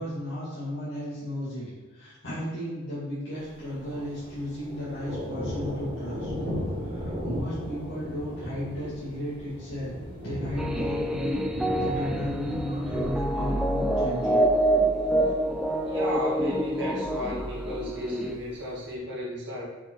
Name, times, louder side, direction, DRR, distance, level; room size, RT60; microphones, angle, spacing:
voice 1, 0.0-6.3 6.7-9.9 10.2-11.4 11.8-14.5, equal, 60° left, -11 dB, 2.3 m, -34 dB
Thunder, 3.4-18.9, equal, 25° right, 1.7 m, -37 dB
sound 1, 10.6-18.3, right 1 dB, 5° right, 0.5 m, -26 dB
voice 2, 15.9-19.7, equal, 55° right, -4 dB, 2.1 m, -34 dB
6.8 x 5.6 x 4.7 m, 1.3 s
head